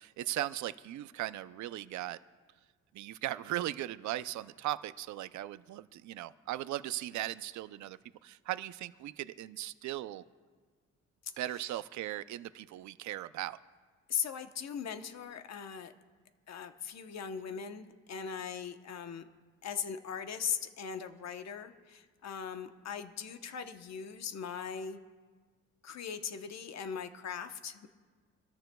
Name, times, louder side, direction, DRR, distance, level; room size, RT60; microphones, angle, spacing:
voice 1, 0.0-2.2 2.9-10.2 11.4-13.6, right 14 dB, 70° right, 15 dB, 0.5 m, -38 dB
voice 2, 14.1-15.9 16.5-19.2 19.6-25.0 25.8-27.9, left 7 dB, 60° left, 8 dB, 1.0 m, -39 dB
25.0 x 13.5 x 2.3 m, 1.5 s
cardioid pair, 90°, 30 cm